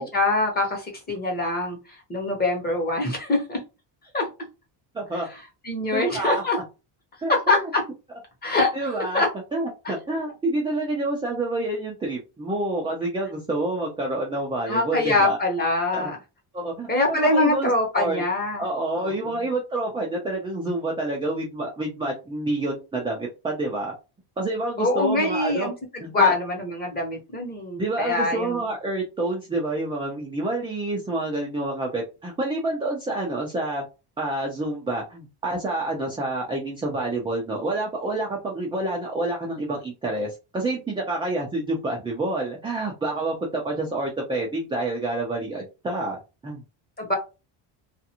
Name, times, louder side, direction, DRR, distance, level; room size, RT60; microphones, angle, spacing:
voice 1, 0.0-3.6 4.1-4.2 5.1-5.2 5.6-6.6 7.5-7.8 8.4-9.3 9.8-9.9 14.7-16.2 16.9-18.6 19.0-19.5 24.8-28.7 47.0-47.1, left 2 dB, 20° left, 1 dB, 1.0 m, -24 dB
voice 2, 4.9-5.3 5.9-6.4 7.2-7.6 8.7-9.2 9.5-15.4 15.9-16.1 16.5-17.7 18.0-18.2 18.6-23.9 24.4-25.7 26.0-26.4 27.8-33.8 34.2-46.2 46.4-46.6, right 2 dB, 10° right, -2 dB, 0.4 m, -28 dB
2.5 x 2.4 x 2.8 m, 0.28 s
cardioid pair, 145°, 49 cm